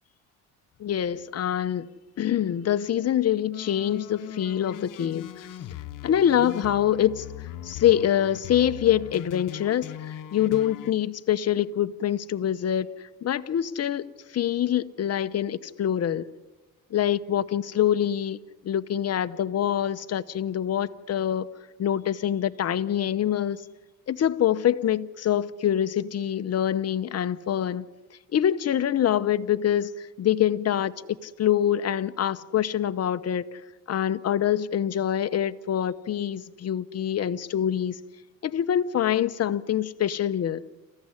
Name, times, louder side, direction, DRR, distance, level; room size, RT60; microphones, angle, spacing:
voice 1, 0.8-1.9 2.2-5.5 6.0-7.3 7.6-16.2 16.9-21.5 21.8-23.6 24.1-27.9 28.3-30.9 31.2-33.6 33.9-38.0 38.4-40.6, left 10 dB, 45° left, 1.0 m, -25 dB
sound 1, 3.5-10.9, left 11 dB, 65° left, 1.2 m, -40 dB
28.0 x 15.0 x 9.8 m
cardioid pair, 105°, 34 cm